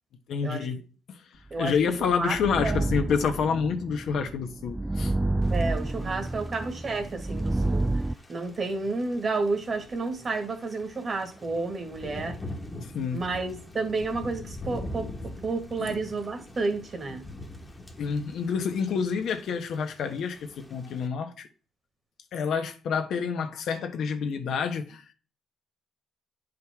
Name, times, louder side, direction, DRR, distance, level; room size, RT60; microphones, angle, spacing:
voice 1, 0.3-0.8 1.1-1.2 1.6-5.1 12.9-13.2 15.8-16.0 18.0-21.5 22.3-25.1, left 6 dB, 70° left, 1.1 m, -28 dB
voice 2, 1.5-2.8 5.5-7.9 8.3-12.4 13.1-15.1 15.4-17.3, right 3 dB, 40° right, 1.8 m, -31 dB
sound 1, 1.8-8.1, right 2 dB, 10° right, 0.3 m, -29 dB
Thunder / Rain, 5.4-21.1, left 1 dB, 15° left, 1.3 m, -44 dB
9.5 x 5.2 x 3.6 m
cardioid pair, 90°, 0 cm